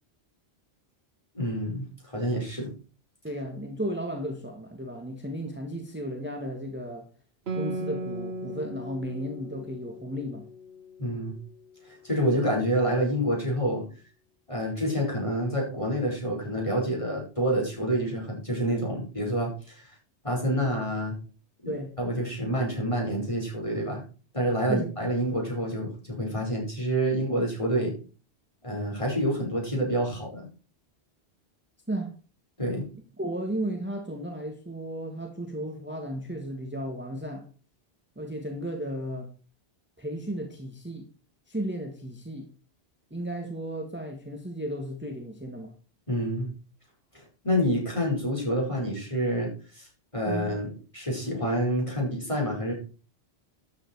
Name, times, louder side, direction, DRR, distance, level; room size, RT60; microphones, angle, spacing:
voice 1, 1.3-2.7 11.0-11.4 11.9-13.9 14.5-19.9 20.2-21.2 21.6-24.0 24.3-27.9 28.6-30.5 32.6-32.9 46.1-46.5 47.1-49.9 50.1-52.7, equal, 30° left, 5.5 m, -28 dB
voice 2, 3.2-7.1 7.5-10.5 21.6-21.9 24.7-24.9 31.9-32.1 33.2-37.5 38.2-39.3 40.0-41.1 41.5-42.5 43.1-45.7 50.3-50.5, right 1 dB, 10° right, 1.4 m, -34 dB
Guitar, 7.5-12.4, right 1 dB, 70° right, 1.7 m, -38 dB
12.5 x 7.8 x 4.6 m
omnidirectional pair, 1.1 m